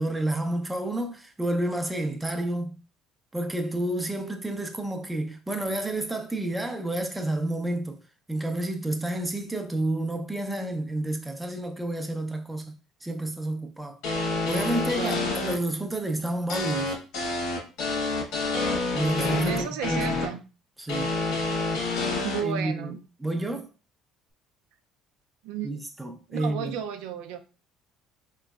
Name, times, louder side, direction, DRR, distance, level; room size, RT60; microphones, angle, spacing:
voice 1, 0.0-2.8 3.3-8.0 8.3-12.7 13.0-14.0 14.5-17.0 18.9-20.2 20.8-21.1 22.4-22.9 23.2-23.7 25.6-26.8, right 1 dB, 10° right, 0.6 m, -30 dB
sound 1, 14.0-15.5 16.5-20.3 20.9-22.4, left 3 dB, 80° left, 1.3 m, -28 dB
voice 2, 15.0-15.3 19.5-20.4 22.2-23.0 25.4-25.7 26.3-27.4, right 8 dB, 85° right, 0.5 m, -33 dB
4.4 x 3.0 x 2.3 m
cardioid pair, 120°, 0 cm